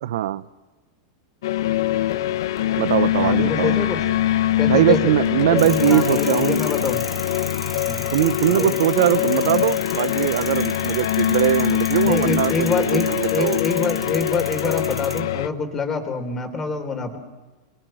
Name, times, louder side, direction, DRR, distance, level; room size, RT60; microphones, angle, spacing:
voice 1, 0.0-0.4 2.8-3.8 4.7-6.6 8.1-13.6, right 13 dB, 70° right, 16 dB, 0.9 m, -21 dB
sound 1, 1.4-15.5, left 13 dB, 75° left, 1.2 m, -23 dB
voice 2, 3.2-4.0 4.6-5.1 5.5-7.1 7.9-8.1 8.5-8.8 12.0-17.2, left 4 dB, 15° left, 6 dB, 3.6 m, -25 dB
sound 2, 5.6-15.2, right 2 dB, 5° right, 1.3 m, -36 dB
28.5 x 22.0 x 7.8 m, 1.2 s
supercardioid pair, 155°, 2 cm